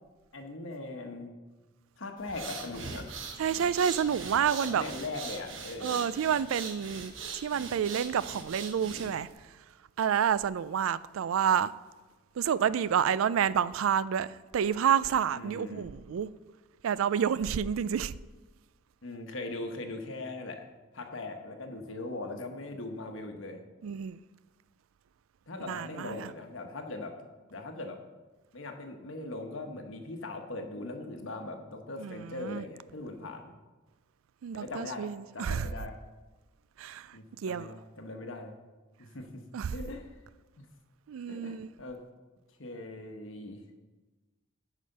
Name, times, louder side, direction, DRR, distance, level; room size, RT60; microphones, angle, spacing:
voice 1, 0.3-1.3 2.0-3.1 4.6-6.1 15.3-15.9 19.0-20.6 20.9-23.6 25.5-27.2 27.5-28.0 28.5-33.5 34.5-35.1 35.3-36.0 37.1-38.6 39.0-39.4 39.7-40.1 40.6-40.7 41.3-42.0 42.6-43.6, left 2 dB, 75° left, 1.2 m, -40 dB
sound 1, 2.2-9.3, right 5 dB, 70° right, 1.1 m, -41 dB
voice 2, 3.4-4.8 5.8-9.3 10.0-11.7 12.4-16.3 16.8-18.1 23.8-24.2 25.7-26.3 32.0-32.6 34.4-35.7 36.8-37.2 37.4-37.8 39.5-39.7 41.1-41.7, right 8 dB, 90° right, 0.4 m, -29 dB
9.6 x 5.0 x 6.6 m
head